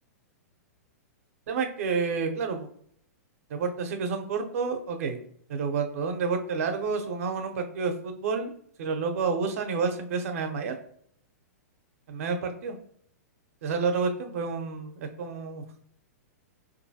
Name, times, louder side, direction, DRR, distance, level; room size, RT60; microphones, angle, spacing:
voice 1, 1.5-2.7 3.5-5.2 5.5-8.5 8.8-10.8 12.1-12.7 13.6-15.6, right 5 dB, 60° right, 6 dB, 0.7 m, -29 dB
4.3 x 2.6 x 2.7 m, 0.64 s
hypercardioid pair, 120°, 9 cm